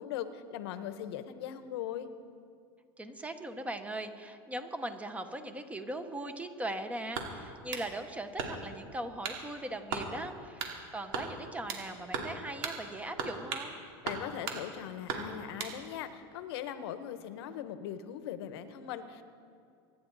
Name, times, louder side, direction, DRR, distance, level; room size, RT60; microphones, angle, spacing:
voice 1, 0.0-2.1 14.0-19.2, left 10 dB, 80° left, 11 dB, 1.0 m, -40 dB
voice 2, 3.0-13.8, right 1 dB, 10° right, 8 dB, 1.0 m, -39 dB
sound 1, 7.1-7.9 8.4-8.8 9.2-9.4 9.9-10.1 10.6-10.8 11.1-11.9 12.1-12.4 12.6-12.8 13.2-13.7 14.1-14.6 15.1-15.8, right 5 dB, 70° right, 2.5 m, -36 dB
25.0 x 10.5 x 4.0 m, 2.5 s
supercardioid pair, 130°, 13 cm